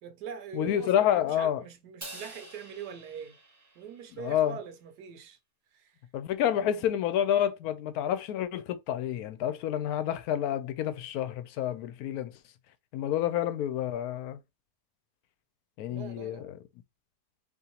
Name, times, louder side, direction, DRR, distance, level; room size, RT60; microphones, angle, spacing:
voice 1, 0.0-3.4 3.8-5.4 5.7-6.0 6.5-6.9 15.8-16.5, right 7 dB, 85° right, 1.3 m, -43 dB
voice 2, 0.5-1.6 4.1-4.6 6.1-12.3 12.9-14.4 15.8-16.6, left 10 dB, 75° left, 1.0 m, -29 dB
Crash cymbal, 2.0-4.4, right 1 dB, 15° right, 0.6 m, -47 dB
3.8 x 3.0 x 2.8 m
omnidirectional pair, 1.7 m